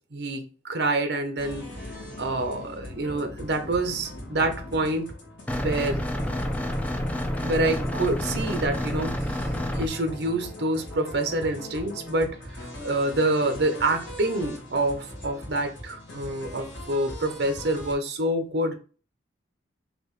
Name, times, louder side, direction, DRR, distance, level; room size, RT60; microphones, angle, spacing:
voice 1, 0.1-1.6 2.2-5.1 5.6-6.0 7.4-18.7, right 2 dB, 60° right, 0.7 m, -27 dB
sound 1, 1.4-17.9, left 1 dB, 75° left, 1.4 m, -40 dB
sound 2, 5.5-9.9, equal, 5° left, 0.4 m, -29 dB
4.2 x 2.8 x 3.2 m
head